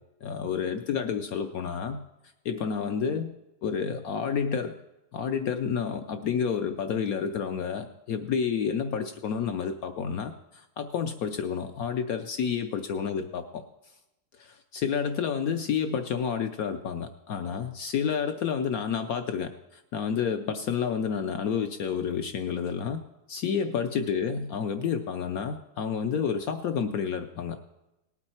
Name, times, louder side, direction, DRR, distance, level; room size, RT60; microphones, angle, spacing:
voice 1, 0.2-2.0 2.4-3.3 3.6-4.7 5.1-13.6 14.4-23.0 23.3-27.6, left 7 dB, 80° left, 8 dB, 0.8 m, -30 dB
18.5 x 8.8 x 4.3 m, 0.95 s
omnidirectional pair, 2.3 m